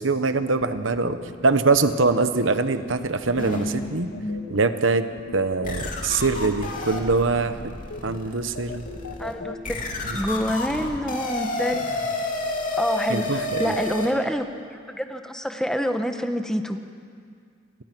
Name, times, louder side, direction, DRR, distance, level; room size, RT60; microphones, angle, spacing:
voice 1, 0.0-4.1 4.5-5.0 5.3-7.7 8.0-8.8 13.1-13.8, right 3 dB, 70° right, 10 dB, 1.1 m, -23 dB
sound 1, 0.6-9.6, left 3 dB, 80° left, 1.7 m, -40 dB
sound 2, 3.3-4.4 5.0-5.1 5.6-14.1, left 2 dB, 45° left, 2.7 m, -31 dB
voice 2, 9.2-9.8 10.1-12.1 12.7-16.8, equal, 5° left, 6 dB, 1.1 m, -27 dB
28.5 x 21.0 x 6.1 m, 2.2 s
head